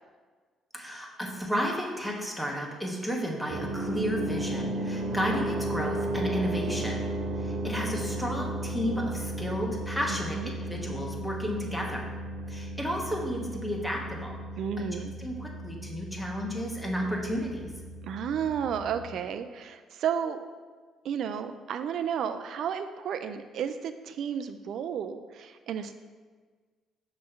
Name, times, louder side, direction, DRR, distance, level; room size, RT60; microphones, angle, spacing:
voice 1, 0.7-7.1 7.4-12.1 12.5-14.4 14.8-14.9 15.2-17.7, equal, ahead, -1 dB, 1.3 m, -32 dB
sound 1, 3.5-19.1, right 1 dB, 85° right, 0.8 m, -34 dB
voice 2, 14.6-15.1 18.0-20.5 21.0-26.0, right 8 dB, 70° right, 9 dB, 0.4 m, -32 dB
6.1 x 3.2 x 5.8 m, 1.5 s
supercardioid pair, 75°, 0 cm